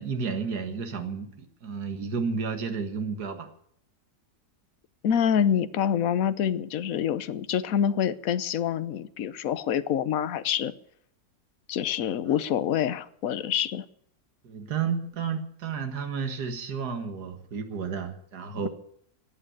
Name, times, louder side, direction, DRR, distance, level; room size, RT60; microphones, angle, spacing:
voice 1, 0.0-3.5 12.3-12.4 14.4-18.7, right 5 dB, 80° right, 6 dB, 2.1 m, -32 dB
voice 2, 5.0-10.7 11.7-13.8, left 9 dB, 65° left, 14 dB, 1.2 m, -26 dB
15.0 x 8.9 x 9.4 m, 0.69 s
omnidirectional pair, 1.7 m